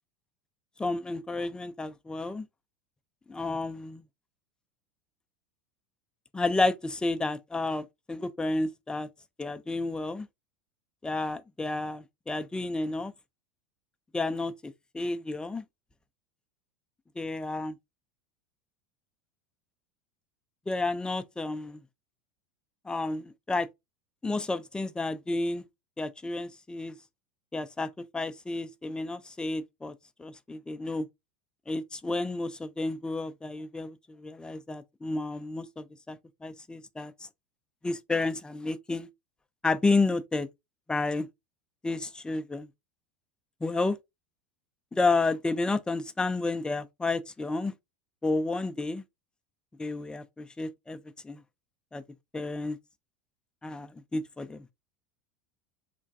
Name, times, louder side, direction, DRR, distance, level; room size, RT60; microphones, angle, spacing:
voice 1, 0.8-2.5 3.3-4.0 6.3-9.1 9.4-10.3 11.0-13.1 14.1-15.6 17.2-17.8 20.7-21.8 22.9-23.7 24.2-25.6 26.0-26.9 27.5-29.9 30.2-31.1 31.7-37.1 37.8-39.1 39.6-40.5 40.9-41.3 41.8-42.7 43.6-44.0 44.9-47.7 48.2-49.0 49.8-51.0 51.2-51.4 51.9-52.0 52.3-52.8 53.6-54.7, left 3 dB, 10° left, 0.4 m, -31 dB
3.3 x 2.2 x 2.6 m
hypercardioid pair, 80°, 8 cm